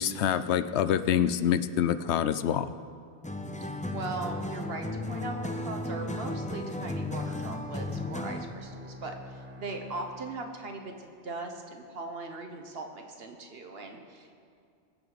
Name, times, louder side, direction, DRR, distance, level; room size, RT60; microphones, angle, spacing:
voice 1, 0.0-2.7, left 9 dB, 85° left, 13 dB, 0.9 m, -26 dB
sound 1, 3.2-8.6, left 2 dB, 10° left, 0.5 m, -35 dB
voice 2, 3.9-14.4, right 3 dB, 65° right, 4 dB, 1.4 m, -39 dB
Bowed string instrument, 6.7-11.1, left 1 dB, 10° right, 1.8 m, -48 dB
22.5 x 7.7 x 4.1 m, 2.3 s
omnidirectional pair, 1.1 m